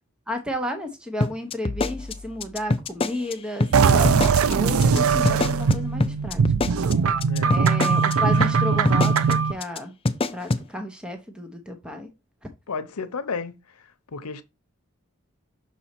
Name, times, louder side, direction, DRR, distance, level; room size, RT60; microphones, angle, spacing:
voice 1, 0.3-6.4 7.5-10.0 10.3-12.1, equal, 5° right, 0.7 m, -32 dB
sound 1, 1.2-3.3 3.6-3.7 4.1-4.5 4.8-5.0 5.3-8.1 8.4-8.5 8.9-9.3 9.6-9.8 10.1-10.6, left 2 dB, 25° left, 0.4 m, -25 dB
sound 2, 3.7-9.5, right 5 dB, 75° right, 0.5 m, -20 dB
voice 2, 7.2-7.6 12.7-13.5 14.1-14.4, left 4 dB, 90° left, 0.8 m, -31 dB
6.2 x 4.2 x 4.3 m
head